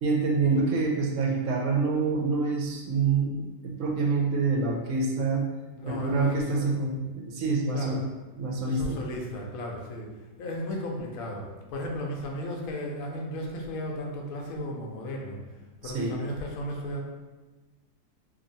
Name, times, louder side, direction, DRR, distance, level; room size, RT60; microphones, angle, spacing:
voice 1, 0.0-5.5 5.8-8.0 8.4-9.0 15.8-16.2, right 4 dB, 65° right, 0 dB, 0.8 m, -26 dB
voice 2, 5.8-6.7 7.7-8.0 8.6-10.1 10.4-15.4 15.8-17.0, left 1 dB, 65° left, -1 dB, 1.0 m, -35 dB
2.8 x 2.7 x 3.9 m, 1.2 s
omnidirectional pair, 1.8 m